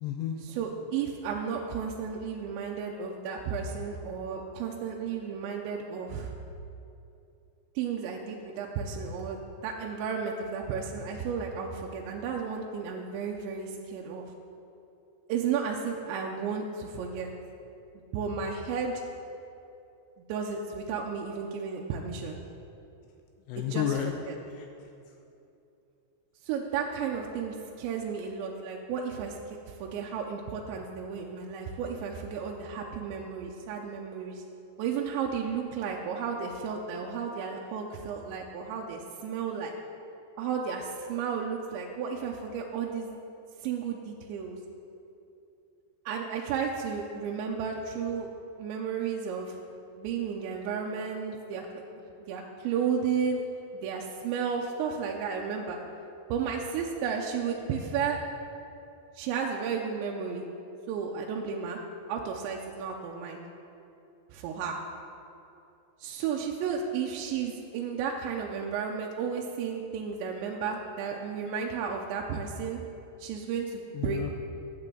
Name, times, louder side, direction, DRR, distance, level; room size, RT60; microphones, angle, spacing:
voice 1, 0.0-0.4 23.5-24.1 24.5-25.2 73.9-74.3, left 10 dB, 80° left, 4 dB, 2.6 m, -32 dB
voice 2, 0.6-6.3 7.8-14.3 15.3-17.3 18.1-19.0 20.3-22.4 23.6-23.9 24.3-24.4 26.4-34.4 34.8-39.7 40.4-43.1 43.6-44.6 46.1-48.3 48.6-49.6 50.0-53.4 53.7-55.8 56.3-58.2 59.1-60.5 60.9-61.8 62.1-63.4 64.3-64.8 66.0-72.8 73.2-74.3, right 6 dB, 85° right, 0 dB, 2.9 m, -33 dB
16.0 x 9.7 x 3.8 m, 2.7 s
omnidirectional pair, 5.3 m